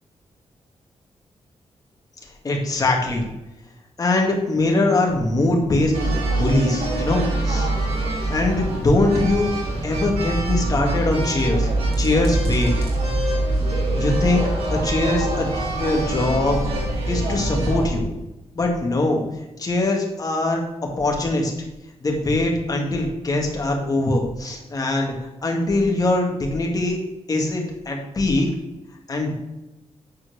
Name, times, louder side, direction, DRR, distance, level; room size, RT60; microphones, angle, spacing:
voice 1, 2.4-3.2 4.0-5.9 6.3-7.7 8.3-9.5 9.8-11.7 12.0-12.7 13.6-13.7 14.0-14.4 14.7-15.5 15.8-16.6 17.1-18.2 18.5-19.2 19.6-21.5 22.0-25.1 25.4-27.0 27.3-28.5 29.1-29.4, left 2 dB, 35° left, 0 dB, 2.1 m, -22 dB
sound 1, 5.9-17.9, right 2 dB, 65° right, 3.1 m, -24 dB
9.7 x 4.6 x 6.3 m, 0.97 s
wide cardioid pair, 155°, 11 cm